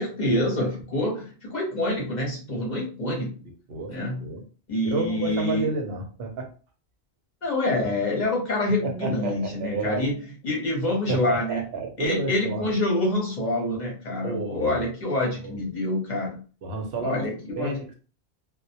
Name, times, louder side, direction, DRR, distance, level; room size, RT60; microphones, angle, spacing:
voice 1, 0.0-3.4 3.9-4.3 4.7-5.7 7.4-11.7 12.0-16.4 17.0-17.8, left 1 dB, 45° left, -2 dB, 0.8 m, -26 dB
voice 2, 4.8-6.5 9.0-10.1 11.1-12.7 14.2-14.8 15.4-15.6 16.6-17.2 17.6-17.9, right 3 dB, 70° right, 3 dB, 0.8 m, -30 dB
2.1 x 2.1 x 2.7 m, 0.36 s
omnidirectional pair, 1.1 m